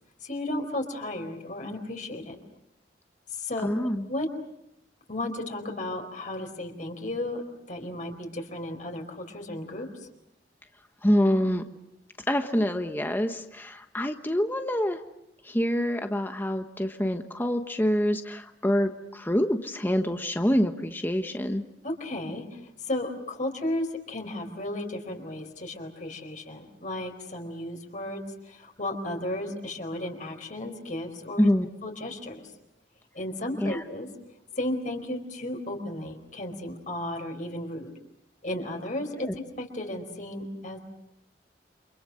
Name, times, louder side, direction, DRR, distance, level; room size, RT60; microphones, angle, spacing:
voice 1, 0.2-2.4 3.3-4.3 5.1-7.4 7.7-10.1 21.8-31.5 31.8-32.5 33.1-34.1 34.5-37.9 38.4-40.8, left 1 dB, 45° left, 3 dB, 4.4 m, -34 dB
voice 2, 3.6-4.1 11.0-11.6 12.3-15.0 15.4-21.6 31.4-31.7 33.6-33.8, equal, 10° left, 6 dB, 1.2 m, -26 dB
29.5 x 26.5 x 6.4 m, 0.81 s
head